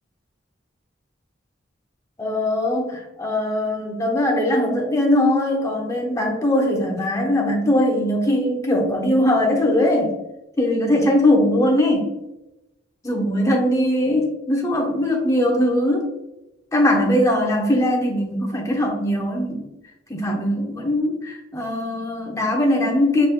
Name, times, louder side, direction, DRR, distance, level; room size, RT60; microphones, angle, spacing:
voice 1, 2.2-10.1 10.6-12.1 13.0-16.1 16.7-19.7 20.1-23.3, left 1 dB, 15° left, -1 dB, 0.9 m, -20 dB
5.2 x 4.0 x 2.2 m, 0.92 s
head